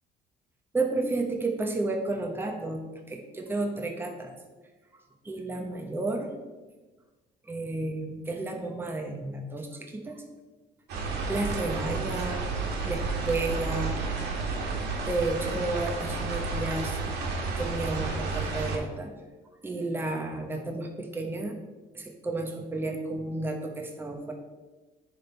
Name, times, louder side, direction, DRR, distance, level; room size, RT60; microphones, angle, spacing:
voice 1, 0.7-2.8 3.1-4.3 5.2-6.3 7.5-9.7 9.9-10.2 11.3-12.4 12.8-14.0 15.0-17.0 17.6-19.1 19.6-21.6 21.9-24.3, right 2 dB, 15° right, 1 dB, 1.0 m, -32 dB
sound 1, 10.9-18.8, right 4 dB, 80° right, 1.5 m, -31 dB
10.0 x 3.6 x 4.5 m, 1.2 s
cardioid pair, 110°, 17 cm